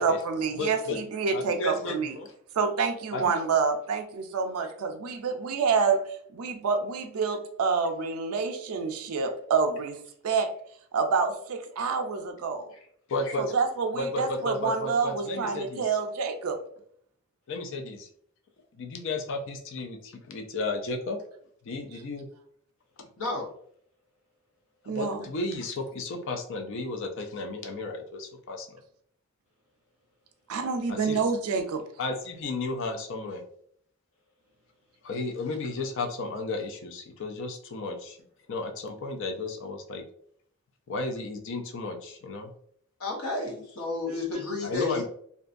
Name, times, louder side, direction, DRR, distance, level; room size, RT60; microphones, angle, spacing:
voice 1, 0.0-2.1 2.6-6.0 6.3-10.5 10.9-12.7 13.4-16.6 24.9-25.3 30.5-31.8, right 5 dB, 80° right, 5 dB, 0.4 m, -28 dB
voice 2, 0.6-1.0 1.3-2.3 3.1-3.3 13.1-13.5 14.0-15.9 17.5-18.1 18.7-21.2 21.6-22.3 23.0-23.1 24.8-28.8 30.9-31.2 32.0-33.4 35.0-38.2 38.5-40.0 40.9-42.5 44.6-45.0, left 2 dB, 60° left, 3 dB, 0.4 m, -33 dB
voice 3, 23.2-23.5 43.0-45.0, left 3 dB, 75° left, 1 dB, 0.8 m, -31 dB
2.5 x 2.2 x 2.4 m, 0.63 s
head